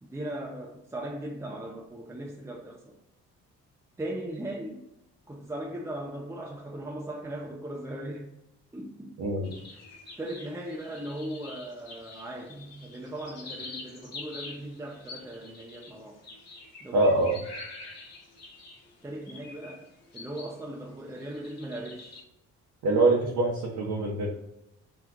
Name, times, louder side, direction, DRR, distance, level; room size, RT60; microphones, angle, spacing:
voice 1, 0.0-3.0 4.0-4.9 5.3-8.3 8.7-9.2 10.2-16.2 16.8-17.3 19.0-22.2, right 1 dB, 10° right, 0.5 m, -38 dB
voice 2, 9.2-9.6 16.9-17.4 22.8-24.3, right 2 dB, 70° right, 0.8 m, -24 dB
sound 1, 9.4-20.6 21.0-22.2, left 3 dB, 55° left, 1.1 m, -46 dB
2.9 x 2.3 x 3.6 m
cardioid pair, 90°, 30 cm